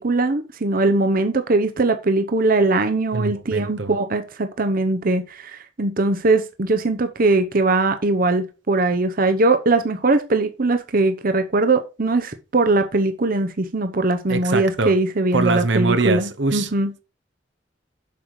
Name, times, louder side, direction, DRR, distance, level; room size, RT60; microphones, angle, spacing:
voice 1, 0.0-16.9, right 2 dB, 50° right, 0.8 m, -20 dB
voice 2, 3.1-3.9 14.3-14.9 15.3-16.7, right 3 dB, 70° right, 1.0 m, -23 dB
7.7 x 6.8 x 4.7 m
head